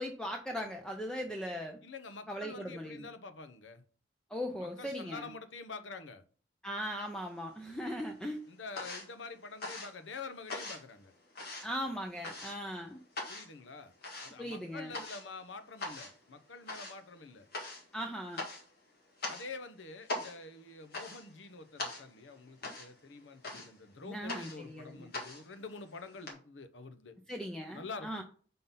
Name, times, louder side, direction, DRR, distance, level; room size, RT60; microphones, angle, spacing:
voice 1, 0.0-1.8 2.3-3.1 4.3-5.3 6.6-8.4 11.6-13.0 14.4-14.9 17.9-18.4 24.0-25.1 27.3-28.2, equal, 5° left, 0.5 m, -39 dB
voice 2, 1.8-3.8 4.6-6.2 8.5-11.1 13.3-13.9 14.2-17.5 19.3-27.2 27.7-28.2, left 4 dB, 75° left, 0.8 m, -47 dB
sound 1, 7.0-7.8 8.0-26.3, left 2 dB, 55° left, 2.0 m, -43 dB
5.7 x 3.8 x 5.5 m
head